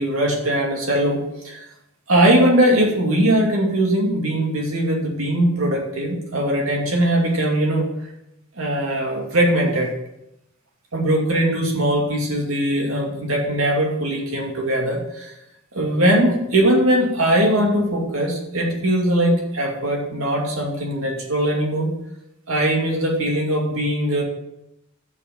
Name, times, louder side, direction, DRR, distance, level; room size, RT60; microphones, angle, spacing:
voice 1, 0.0-1.7 2.1-7.9 8.6-9.9 10.9-15.3 15.7-21.9 22.5-24.2, right 1 dB, 80° right, -1 dB, 2.5 m, -20 dB
6.7 x 6.0 x 7.3 m, 0.84 s
head